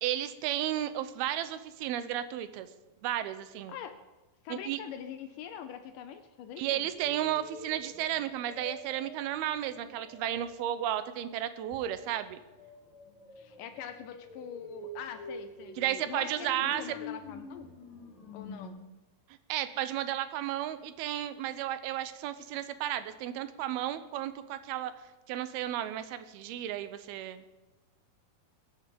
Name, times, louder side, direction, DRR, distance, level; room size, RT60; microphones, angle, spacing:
voice 1, 0.0-2.7 3.0-3.7 4.5-4.8 6.6-12.4 15.8-16.8 19.5-24.9 25.3-27.4, right 12 dB, 90° right, 12 dB, 2.7 m, -33 dB
voice 2, 4.4-6.8 13.4-17.7 18.3-18.8, left 9 dB, 80° left, 9 dB, 2.0 m, -43 dB
sound 1, 6.9-10.5 11.7-18.7, left 2 dB, 55° left, 5.1 m, -47 dB
21.5 x 8.6 x 5.2 m, 1.1 s
omnidirectional pair, 4.3 m